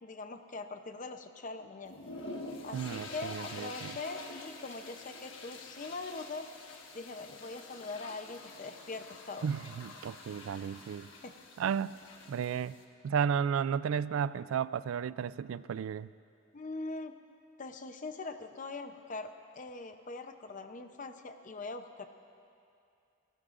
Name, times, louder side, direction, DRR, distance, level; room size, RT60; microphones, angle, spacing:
voice 1, 0.0-2.0 2.6-6.5 6.9-9.5 11.2-11.3 16.5-17.2 17.6-22.1, left 3 dB, 40° left, 8 dB, 0.7 m, -42 dB
sound 1, 1.8-12.8, left 2 dB, 70° left, 1.3 m, -47 dB
voice 2, 2.7-4.0 9.4-11.1 11.6-11.9 12.3-12.8 13.0-16.1, right 7 dB, 85° right, 17 dB, 0.3 m, -33 dB
30.0 x 14.5 x 2.5 m, 2.5 s
head